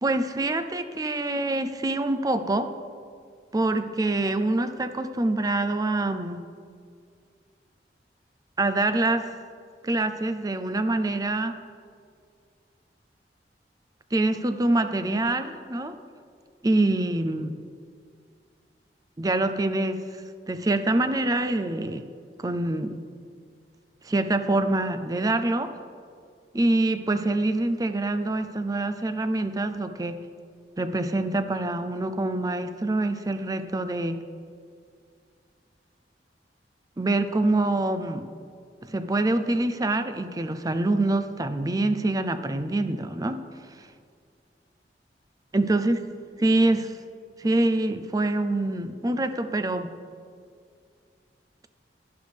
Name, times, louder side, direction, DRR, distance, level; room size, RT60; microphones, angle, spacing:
voice 1, 0.0-2.7 3.5-6.5 8.6-9.3 9.8-11.5 14.1-16.0 16.6-17.5 19.2-20.0 20.5-22.1 22.4-23.0 24.0-25.7 26.5-30.2 30.8-34.2 37.0-38.3 38.8-43.4 45.5-46.0 46.4-46.9 47.4-49.9, right 2 dB, 20° right, 10 dB, 0.4 m, -25 dB
11.5 x 11.0 x 3.4 m, 2.2 s
head